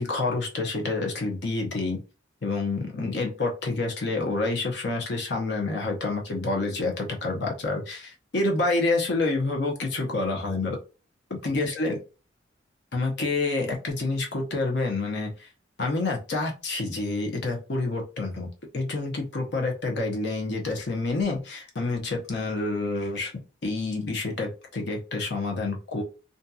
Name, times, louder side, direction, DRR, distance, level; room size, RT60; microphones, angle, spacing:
voice 1, 0.0-2.0 2.4-10.8 11.3-12.0 12.9-15.5 15.8-18.5 18.7-23.3 23.6-26.0, left 3 dB, 60° left, 1 dB, 0.8 m, -28 dB
2.7 x 2.5 x 2.3 m, 0.32 s
head